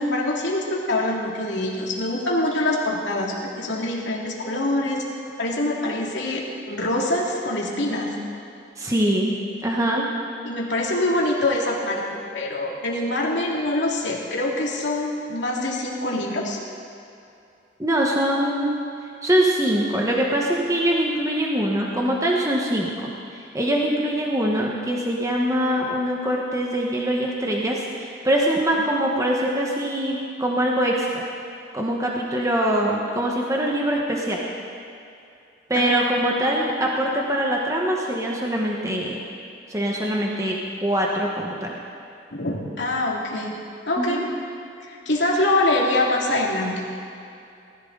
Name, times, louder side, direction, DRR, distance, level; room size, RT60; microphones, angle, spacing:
voice 1, 0.0-5.1 5.4-8.1 10.4-16.6 35.7-35.9 42.3-43.6 43.9-44.2 44.8-46.9, left 1 dB, 80° left, -2 dB, 2.5 m, -24 dB
voice 2, 8.8-9.3 9.6-10.0 17.8-18.7 19.2-31.2 31.7-34.4 35.7-39.2 39.7-40.6 40.8-41.8 44.0-44.2, right 1 dB, 15° right, -2 dB, 1.3 m, -23 dB
19.5 x 14.5 x 4.0 m, 2.6 s
head